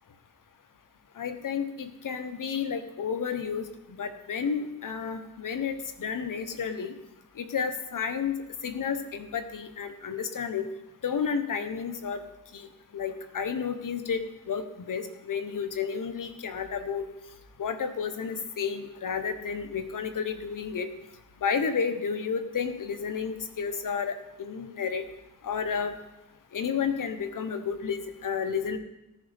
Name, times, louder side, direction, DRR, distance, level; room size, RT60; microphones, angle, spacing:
voice 1, 1.2-3.6 4.0-7.0 7.4-8.3 8.6-10.7 11.0-12.2 12.5-12.7 12.9-14.2 14.5-17.0 17.6-20.9 21.4-25.0 25.4-25.9 26.5-28.8, left 6 dB, 75° left, 9 dB, 1.1 m, -31 dB
18.0 x 10.5 x 3.6 m, 0.93 s
wide cardioid pair, 85°, 32 cm